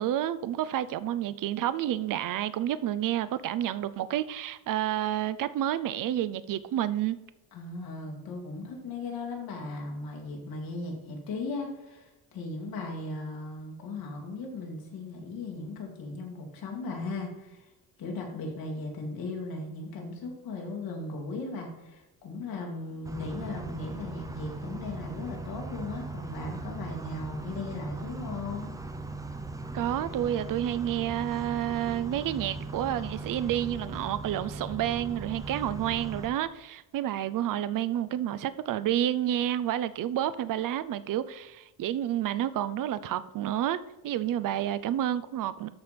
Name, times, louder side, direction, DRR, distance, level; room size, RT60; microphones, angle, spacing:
voice 1, 0.0-7.2 29.7-45.7, right 12 dB, 60° right, 0.6 m, -30 dB
voice 2, 7.5-17.7 18.0-28.7, left 3 dB, 70° left, 2.5 m, -37 dB
sound 1, 23.0-36.3, right 2 dB, 10° right, 0.6 m, -39 dB
13.0 x 4.4 x 5.2 m
cardioid pair, 175°, 36 cm